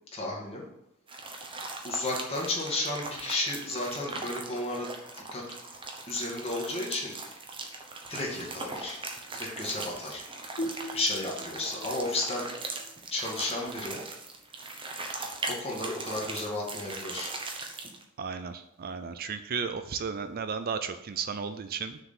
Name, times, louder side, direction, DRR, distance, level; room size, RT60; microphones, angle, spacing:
voice 1, 0.1-0.6 1.8-4.9 5.3-5.4 6.1-7.1 8.1-9.0 9.3-10.2 10.9-12.4 13.1-14.0 15.5-17.3, left 2 dB, 25° left, -2 dB, 2.0 m, -33 dB
sound 1, 1.1-18.0, right 3 dB, 25° right, 1.0 m, -40 dB
sound 2, 10.6-14.0, equal, 70° left, 2.2 m, -41 dB
voice 2, 18.2-22.0, right 6 dB, 45° right, 9 dB, 0.4 m, -34 dB
6.5 x 4.8 x 6.8 m, 0.82 s
head